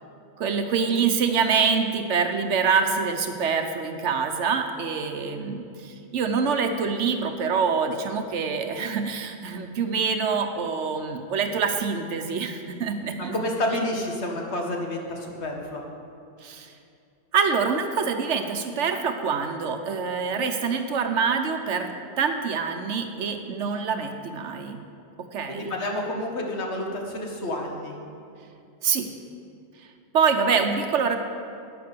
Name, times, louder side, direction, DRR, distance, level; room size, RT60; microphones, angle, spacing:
voice 1, 0.4-13.4 16.4-16.7 17.3-21.9 22.2-24.8 25.3-25.7 28.8-29.1 30.1-31.2, right 5 dB, 85° right, 6 dB, 1.1 m, -25 dB
voice 2, 13.2-15.8 25.5-27.9, left 1 dB, 70° left, 0 dB, 2.0 m, -29 dB
12.0 x 8.8 x 6.8 m, 2.5 s
omnidirectional pair, 1.2 m